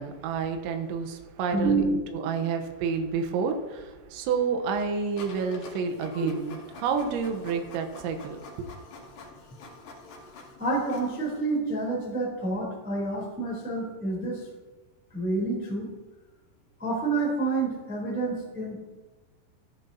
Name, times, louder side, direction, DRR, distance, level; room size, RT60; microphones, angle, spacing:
voice 1, 0.0-8.7, right 5 dB, 75° right, 5 dB, 3.1 m, -30 dB
voice 2, 1.5-2.0 2.4-2.5 6.1-6.3 10.6-14.5 15.1-15.9 16.8-18.7, right 3 dB, 5° right, -4 dB, 2.1 m, -28 dB
Printer, 5.2-11.4, left 3 dB, 60° left, 2.2 m, -47 dB
14.5 x 11.0 x 2.8 m, 1.2 s
omnidirectional pair, 6.0 m